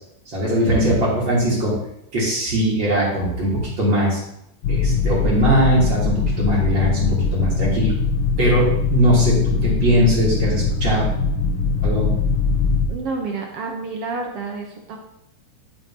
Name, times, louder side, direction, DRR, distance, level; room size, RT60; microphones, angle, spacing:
voice 1, 0.3-1.8 2.1-4.2 4.7-7.9 8.4-11.1 11.8-12.1, right 1 dB, 35° right, -6 dB, 4.0 m, -20 dB
sound 1, 4.6-12.9, left 4 dB, 80° left, 2.9 m, -21 dB
voice 2, 12.9-15.0, right 3 dB, 60° right, 1 dB, 1.6 m, -29 dB
13.0 x 7.7 x 3.0 m, 0.78 s
omnidirectional pair, 3.8 m